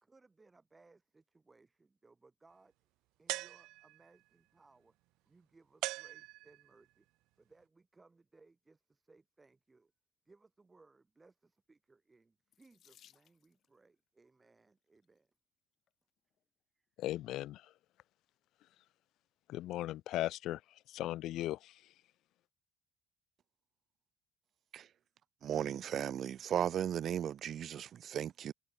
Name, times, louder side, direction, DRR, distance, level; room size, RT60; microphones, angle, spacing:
voice 1, 0.0-2.7 3.2-5.0 5.3-7.1 7.3-9.9 10.2-15.3 16.7-16.9, right 3 dB, 15° right, 3.2 m, -65 dB
sound 1, 3.3-4.2 5.8-6.8, right 20 dB, 80° right, 0.7 m, -41 dB
Water tap faucet / Sink (filling or washing), 12.5-13.8 14.8-15.2 15.9-16.0 16.3-16.4, left 10 dB, 50° left, 6.2 m, -65 dB
voice 2, 17.0-17.6 19.5-20.6 20.9-21.6, left 15 dB, 65° left, 0.3 m, -37 dB
voice 3, 25.4-28.5, right 9 dB, 45° right, 0.4 m, -36 dB
cardioid pair, 145°, 0 cm